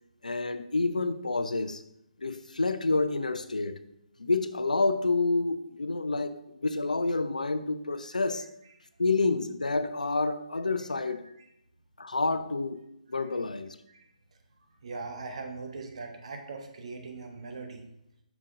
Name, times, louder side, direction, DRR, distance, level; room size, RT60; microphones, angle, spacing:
voice 1, 0.2-1.8 2.2-3.8 4.2-8.5 9.0-11.3 12.0-13.8, left 3 dB, 75° left, 0.6 m, -28 dB
voice 2, 11.0-11.3 13.9-14.1 14.8-17.8, right 3 dB, 50° right, 1.3 m, -40 dB
7.4 x 6.1 x 3.8 m
figure-of-eight pair, 140°, 4 cm